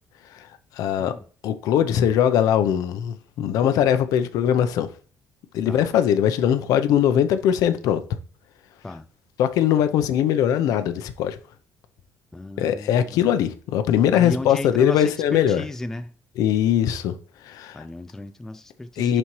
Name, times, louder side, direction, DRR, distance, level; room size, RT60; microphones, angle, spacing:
voice 1, 0.8-1.1 1.4-4.9 5.5-8.0 9.4-11.4 12.6-15.6 16.4-17.1 17.5-17.8 19.0-19.2, left 9 dB, 75° left, 0.7 m, -21 dB
voice 2, 12.3-13.2 14.1-16.1 17.7-19.2, left 2 dB, 5° left, 0.3 m, -34 dB
11.0 x 4.4 x 3.2 m
cardioid pair, 165°, 6 cm